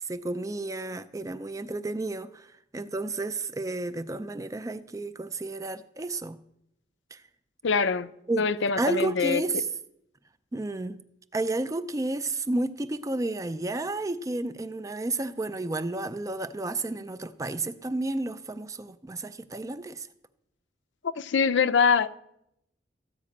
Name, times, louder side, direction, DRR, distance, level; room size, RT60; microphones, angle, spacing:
voice 1, 0.0-6.4 7.1-7.2 8.3-8.4 8.8-9.7 10.5-11.0 11.3-20.1, right 2 dB, 15° right, 0.4 m, -31 dB
voice 2, 7.6-8.1 8.4-9.4 21.2-22.2, left 5 dB, 75° left, 0.5 m, -24 dB
13.5 x 5.0 x 8.5 m
head